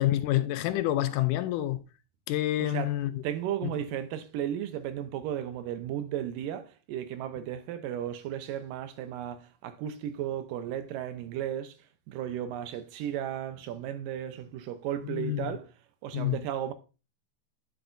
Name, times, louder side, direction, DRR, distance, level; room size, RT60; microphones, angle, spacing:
voice 1, 0.0-1.8 2.3-3.1 3.6-3.7 15.0-15.6 16.1-16.5, left 14 dB, 80° left, 2.0 m, -28 dB
voice 2, 2.6-2.9 3.2-11.8 12.1-15.7 16.0-16.7, right 10 dB, 80° right, 2.5 m, -34 dB
10.0 x 6.8 x 2.6 m
omnidirectional pair, 3.9 m